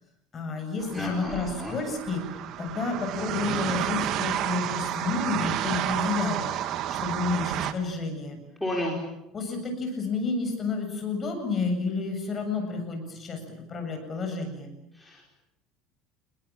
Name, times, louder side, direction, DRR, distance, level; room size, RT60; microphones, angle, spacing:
voice 1, 0.3-2.2 2.6-6.5 7.0-8.4 9.3-13.4 13.7-14.7, left 4 dB, 25° left, 4 dB, 7.7 m, -30 dB
sound 1, 0.8-7.7, right 11 dB, 50° right, 2.1 m, -31 dB
voice 2, 0.9-1.7 8.6-9.0 15.0-15.2, left 1 dB, 5° left, -2 dB, 5.0 m, -32 dB
28.5 x 21.5 x 9.0 m, 0.86 s
cardioid pair, 145°, 0 cm